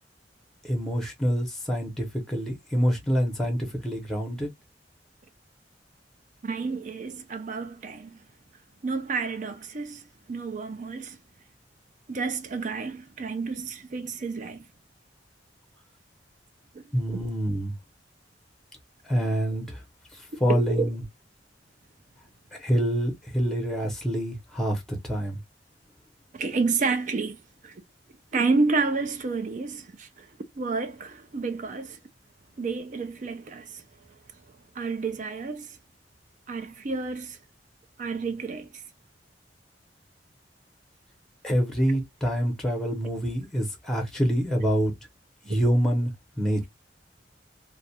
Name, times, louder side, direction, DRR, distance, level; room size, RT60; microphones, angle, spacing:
voice 1, 0.6-4.5 16.9-17.7 19.1-19.8 20.2-21.0 22.6-25.4 41.4-44.9 45.5-46.7, equal, ahead, 0.8 m, -26 dB
voice 2, 6.4-8.2 8.8-11.2 12.1-14.7 16.7-16.8 20.5-20.9 26.3-27.8 28.3-30.3 30.6-32.0 32.6-33.8 34.8-35.8 36.5-37.4 38.0-38.7 45.5-45.6, right 4 dB, 45° right, 0.5 m, -30 dB
2.4 x 2.1 x 2.7 m
head